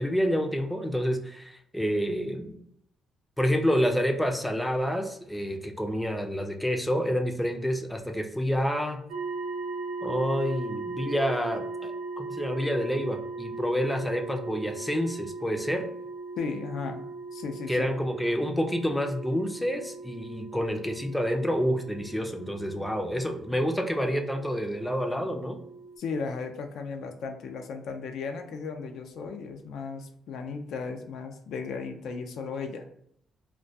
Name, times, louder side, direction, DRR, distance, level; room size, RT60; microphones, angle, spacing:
voice 1, 0.0-2.6 3.4-9.0 10.0-15.8 17.7-25.6, equal, 5° left, 3 dB, 0.4 m, -28 dB
sound 1, 9.1-26.0, right 3 dB, 65° right, 0.7 m, -39 dB
voice 2, 16.4-17.0 17.3-17.9 26.0-32.8, left 5 dB, 75° left, 5 dB, 0.3 m, -35 dB
2.2 x 2.1 x 2.6 m, 0.71 s
cardioid pair, 90°, 0 cm